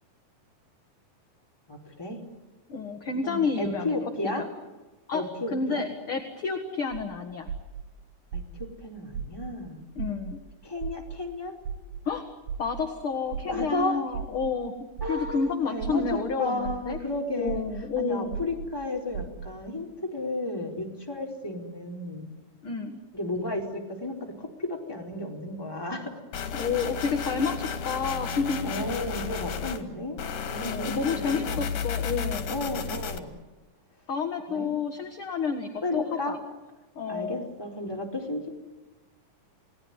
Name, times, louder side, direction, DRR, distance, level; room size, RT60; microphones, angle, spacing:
voice 1, 1.7-2.2 3.2-4.5 5.1-5.9 8.3-9.8 10.6-11.5 13.5-14.0 15.0-17.6 18.0-22.2 23.1-26.1 28.6-30.2 30.5-31.7 32.5-33.3 34.5-34.7 35.8-36.3 37.1-38.5, left 1 dB, 5° left, 0 dB, 4.2 m, -33 dB
voice 2, 2.7-4.0 4.2-4.5 5.1-5.2 5.5-7.5 10.0-10.4 12.1-12.3 12.6-17.0 17.4-18.4 22.6-23.0 26.5-28.7 30.6-32.5 34.1-36.4 37.0-37.4, left 5 dB, 45° left, 4 dB, 2.3 m, -30 dB
sound 1, 6.9-7.0 7.5-7.8 8.3-8.7 9.1-9.5 10.0-10.3 10.8-11.2 11.6-12.0 12.5-12.8 13.3-13.7 14.1-14.5 15.0-15.3 15.8-16.2 16.6-17.0 17.5-17.8 18.3-18.7 19.1-19.5, right 7 dB, 70° right, 3.3 m, -34 dB
sound 2, 26.3-29.8 30.2-33.2, left 6 dB, 75° left, 3.5 m, -33 dB
29.5 x 19.0 x 9.8 m, 1.2 s
omnidirectional pair, 3.8 m